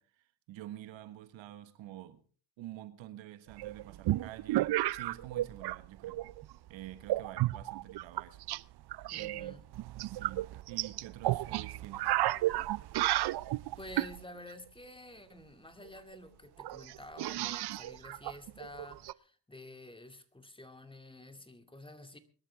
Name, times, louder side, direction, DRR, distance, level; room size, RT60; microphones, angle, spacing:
voice 1, 0.0-2.2 2.6-6.2 6.7-8.4 9.1-9.6 10.0-12.1, right 13 dB, 85° right, 1.5 m, -48 dB
sound 1, 3.6-5.8 6.0-6.5 7.1-8.6 8.9-14.2 15.8-15.9 16.1-16.2 16.6-19.1, right 15 dB, 60° right, 0.6 m, -33 dB
voice 2, 9.1-9.6 13.4-22.2, left 1 dB, 10° left, 2.3 m, -50 dB
22.5 x 12.5 x 3.5 m
supercardioid pair, 70°, 45 cm